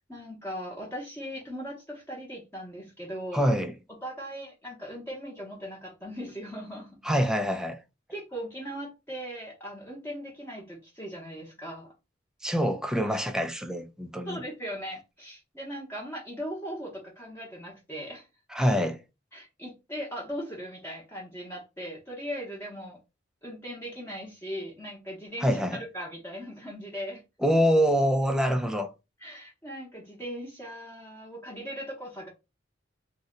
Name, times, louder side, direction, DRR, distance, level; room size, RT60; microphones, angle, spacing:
voice 1, 0.1-3.4 4.0-7.0 8.1-11.9 14.3-18.3 19.3-23.0 23.4-27.2 29.2-32.3, equal, 15° left, 0.8 m, -39 dB
voice 2, 3.3-3.7 7.0-7.8 12.4-14.4 18.5-19.0 25.4-25.8 27.4-28.9, equal, 5° right, 0.4 m, -25 dB
2.7 x 2.1 x 3.6 m
head